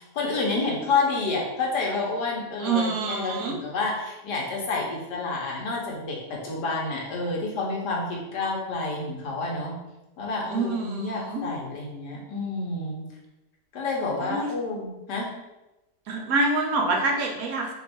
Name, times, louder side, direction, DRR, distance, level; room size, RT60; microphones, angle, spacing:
voice 1, 0.1-9.7 10.2-13.0 13.7-15.3, left 3 dB, 85° left, -2 dB, 1.6 m, -29 dB
voice 2, 2.6-3.6 10.4-11.4 14.2-14.5 16.1-17.7, right 3 dB, 65° right, 1 dB, 1.1 m, -26 dB
3.5 x 3.2 x 4.4 m, 1.0 s
omnidirectional pair, 1.8 m